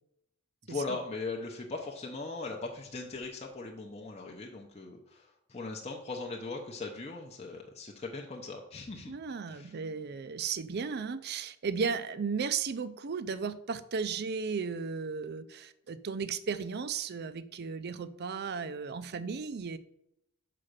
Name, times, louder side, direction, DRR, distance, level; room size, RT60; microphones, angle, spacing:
voice 1, 0.6-9.1 9.5-9.7, left 3 dB, 30° left, 0 dB, 0.7 m, -39 dB
voice 2, 9.1-19.8, right 5 dB, 50° right, 14 dB, 0.5 m, -35 dB
5.8 x 5.0 x 6.5 m, 0.79 s
head